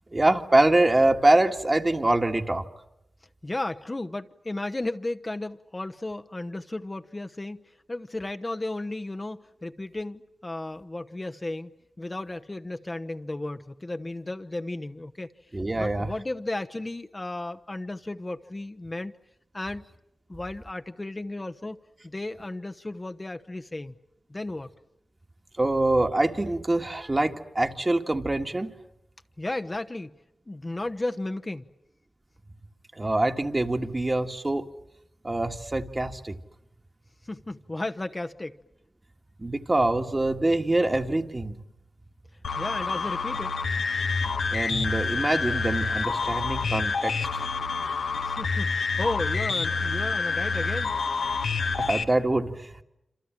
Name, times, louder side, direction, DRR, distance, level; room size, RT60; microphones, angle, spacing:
voice 1, 0.1-2.6 15.5-16.1 25.6-28.7 33.0-34.6 35.2-36.4 39.4-41.6 44.5-47.4 51.8-52.8, right 2 dB, 30° right, 1.8 m, -24 dB
voice 2, 3.4-7.6 7.9-11.7 12.0-15.3 15.8-19.1 19.5-19.8 20.3-21.8 22.0-23.9 24.3-24.7 29.4-30.1 30.5-31.7 37.2-38.6 42.6-43.5 48.2-48.7 49.0-50.9, left 2 dB, 30° left, 1.0 m, -34 dB
sound 1, 42.4-52.0, left 4 dB, 85° left, 1.4 m, -28 dB
27.0 x 27.0 x 7.6 m
cardioid pair, 50°, 0 cm